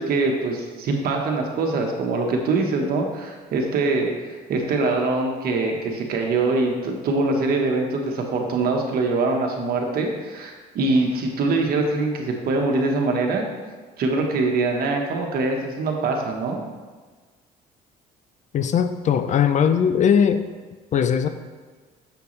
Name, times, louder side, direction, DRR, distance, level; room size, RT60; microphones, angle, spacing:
voice 1, 0.0-4.1 4.5-13.4 14.0-16.6, right 3 dB, 65° right, 2 dB, 1.3 m, -23 dB
voice 2, 18.5-20.4 20.9-21.3, left 7 dB, 45° left, 10 dB, 0.5 m, -19 dB
7.0 x 6.8 x 3.2 m, 1.4 s
cardioid pair, 110°, 17 cm